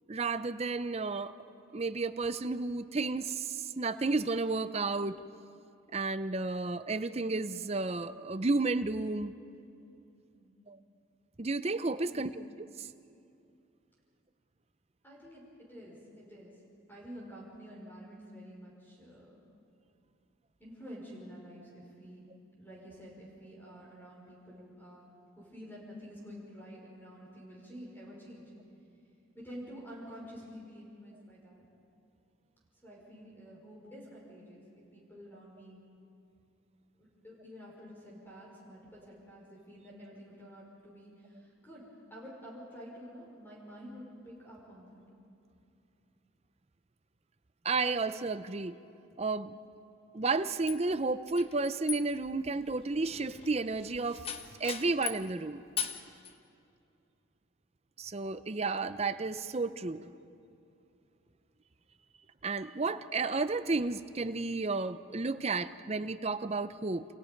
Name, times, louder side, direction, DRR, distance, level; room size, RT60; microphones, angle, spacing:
voice 1, 0.1-1.3 1.7-5.2 5.9-9.3 10.7-10.8 11.4-12.3 12.8-12.9 47.6-48.8 49.2-49.6 50.1-54.3 54.6-55.6 58.0-60.1 62.4-67.1, right 3 dB, 30° right, 12 dB, 0.6 m, -32 dB
voice 2, 11.9-12.4 15.0-16.6 16.9-19.4 20.6-22.2 22.6-25.1 25.4-28.5 29.3-31.6 32.8-35.8 37.0-45.0, equal, 10° left, -4 dB, 5.4 m, -49 dB
sound 1, 50.7-55.3 55.8-56.3, left 7 dB, 30° left, 1.0 m, -40 dB
29.0 x 27.0 x 5.3 m, 2.6 s
head